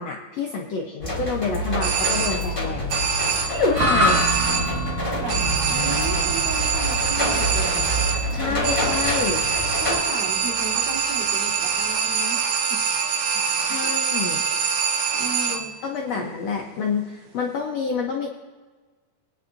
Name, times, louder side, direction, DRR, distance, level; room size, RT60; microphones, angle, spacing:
voice 1, 0.0-3.0 3.5-4.2 8.3-9.5 13.5-14.4 15.4-18.3, left 4 dB, 70° left, 1 dB, 1.6 m, -28 dB
sound 1, 1.0-10.0, equal, 10° left, 1.8 m, -27 dB
sound 2, 1.8-2.6 2.9-3.7 4.1-4.9 5.3-15.8, right 6 dB, 90° right, 2.8 m, -24 dB
sound 3, 3.7-12.1, equal, 40° right, 3.2 m, -29 dB
voice 2, 5.2-8.8 9.8-12.8 13.7-13.9 15.1-15.7 16.1-16.5, right 3 dB, 65° right, -6 dB, 4.7 m, -35 dB
23.5 x 9.7 x 2.6 m, 1.4 s
omnidirectional pair, 4.1 m